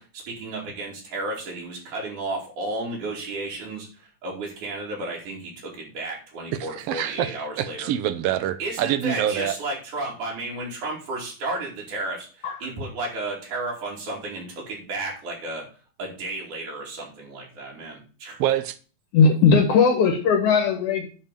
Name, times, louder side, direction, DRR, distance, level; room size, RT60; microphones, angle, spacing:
voice 1, 0.0-7.9 8.6-15.7 16.0-18.4, right 2 dB, 85° right, 4.3 m, -33 dB
voice 2, 6.8-9.6 18.4-18.8, right 11 dB, 70° right, 1.6 m, -26 dB
voice 3, 19.1-21.1, left 5 dB, 80° left, 3.1 m, -18 dB
10.5 x 4.0 x 7.2 m
omnidirectional pair, 3.4 m